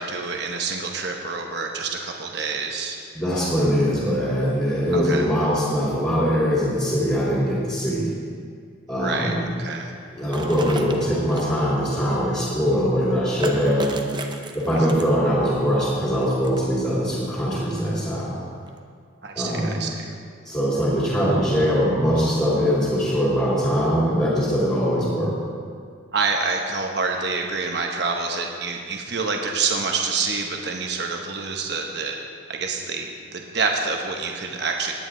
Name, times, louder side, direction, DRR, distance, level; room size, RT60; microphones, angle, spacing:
voice 1, 0.0-3.0 4.9-5.2 9.0-9.9 19.2-20.1 26.1-32.2 32.5-34.9, right 4 dB, 55° right, 2 dB, 1.0 m, -27 dB
voice 2, 3.1-8.1 8.9-9.5 10.1-14.0 14.5-18.4 19.3-19.8 20.4-25.4, equal, 20° left, -10 dB, 3.1 m, -22 dB
sound 1, 10.3-11.5 13.4-15.3 16.2-16.8 17.8-17.9 18.7-18.8, right 2 dB, 20° right, 0.7 m, -34 dB
19.0 x 9.7 x 3.8 m, 2.1 s
head